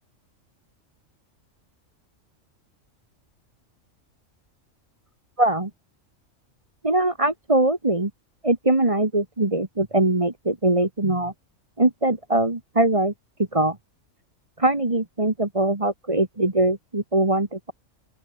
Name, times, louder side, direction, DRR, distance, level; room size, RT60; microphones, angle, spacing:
voice 1, 5.4-5.7 6.8-8.1 8.4-11.3 11.8-13.1 13.5-13.8 14.6-17.7, right 2 dB, 25° right, 1.7 m, -22 dB
open air
omnidirectional pair, 1.3 m